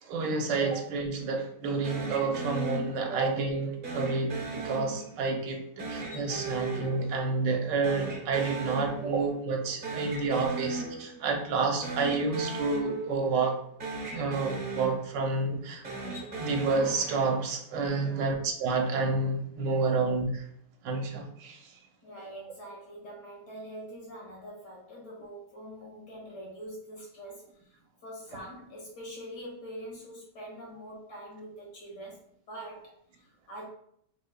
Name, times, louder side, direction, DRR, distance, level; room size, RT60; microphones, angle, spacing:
voice 1, 0.0-13.6 14.1-15.8 16.4-20.4 20.8-21.7, right 3 dB, 90° right, 2 dB, 1.4 m, -29 dB
sound 1, 1.8-3.4 3.8-5.4 5.8-7.6 7.8-9.4 9.6-11.4 11.8-13.5 13.8-15.4 15.8-17.5, right 3 dB, 35° right, 1.0 m, -37 dB
voice 2, 18.0-18.3 22.0-27.5 28.0-32.2 32.5-33.7, right 1 dB, 70° left, -4 dB, 2.3 m, -44 dB
5.3 x 3.8 x 2.2 m, 0.72 s
omnidirectional pair, 1.9 m